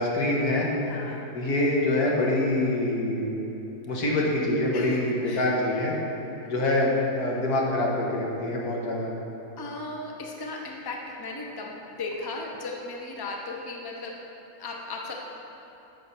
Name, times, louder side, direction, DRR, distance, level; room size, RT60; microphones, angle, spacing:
voice 1, 0.0-0.7 1.3-3.4 3.9-5.9 6.5-9.1, left 1 dB, 80° left, -3 dB, 1.9 m, -25 dB
voice 2, 0.9-1.2 4.7-5.5 9.6-14.1 14.6-15.1, left 3 dB, 20° left, -1 dB, 0.7 m, -36 dB
8.6 x 5.7 x 6.6 m, 2.9 s
omnidirectional pair, 1.6 m